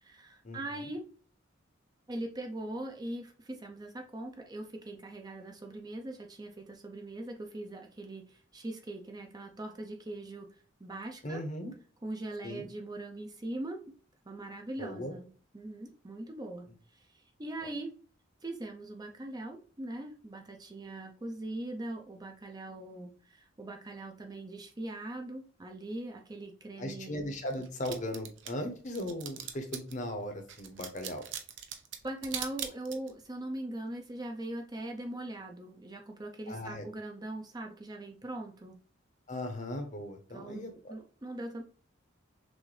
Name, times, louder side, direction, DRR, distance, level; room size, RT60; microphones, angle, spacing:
voice 1, 0.0-1.0 2.1-11.4 12.0-13.8 14.3-15.3 15.5-17.9 18.4-27.2 32.0-38.8 40.3-41.6, right 1 dB, 20° right, 3 dB, 0.5 m, -41 dB
voice 2, 11.2-11.7 12.4-12.7 14.8-15.1 26.8-31.2 36.5-36.9 39.3-40.9, left 1 dB, 35° left, 5 dB, 0.9 m, -38 dB
sound 1, 27.5-30.0 30.5-33.2, right 9 dB, 60° right, 0.6 m, -40 dB
6.2 x 2.6 x 3.2 m, 0.41 s
head